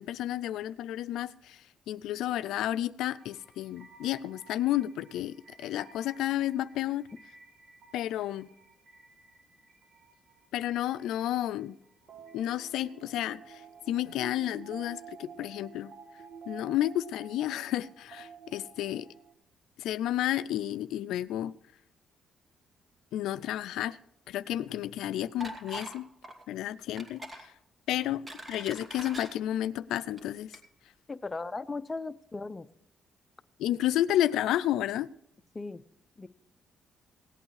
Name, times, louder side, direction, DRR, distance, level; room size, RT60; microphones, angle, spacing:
voice 1, 0.0-7.0 7.9-8.5 10.5-11.8 12.3-13.6 13.9-15.9 16.5-19.1 19.8-21.5 23.1-24.0 24.3-26.1 26.5-27.5 27.9-28.2 28.5-30.6 33.6-35.1, left 12 dB, 85° left, 0.4 m, -31 dB
sound 1, 3.1-19.3, right 6 dB, 60° right, 1.4 m, -52 dB
sound 2, 25.4-26.0 26.2-26.4 27.0-27.4 28.0-29.3 30.0-30.2 30.5-30.6, right 1 dB, 20° right, 2.4 m, -42 dB
voice 2, 31.1-32.7 35.5-35.8 36.2-36.3, left 3 dB, 25° left, 0.6 m, -37 dB
17.5 x 8.8 x 4.8 m
cardioid pair, 90°, 0 cm